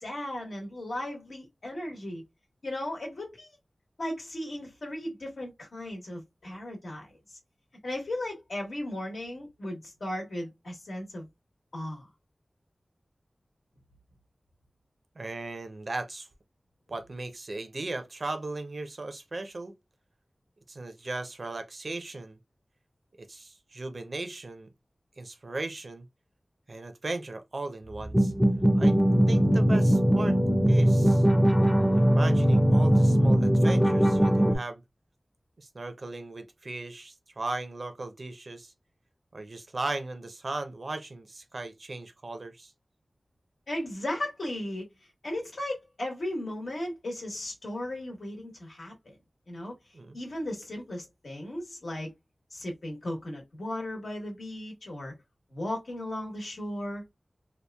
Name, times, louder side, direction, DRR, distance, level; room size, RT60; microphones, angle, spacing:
voice 1, 0.0-2.2 2.6-3.5 4.0-7.4 7.8-11.2 11.7-12.1 43.7-44.9 45.2-49.2 49.5-49.8 50.1-52.1 52.5-55.1 55.5-57.0, left 1 dB, 80° left, 1.1 m, -36 dB
voice 2, 15.2-16.3 16.9-19.7 20.7-22.4 23.2-24.7 25.2-26.1 26.7-28.3 28.7-29.0 29.3-30.4 30.7-31.2 31.9-34.8 35.6-38.7 39.3-42.7 49.9-50.2, right 2 dB, 60° right, 0.5 m, -37 dB
sound 1, 28.0-34.6, equal, 5° left, 0.5 m, -21 dB
2.9 x 2.3 x 2.2 m
wide cardioid pair, 75°, 0 cm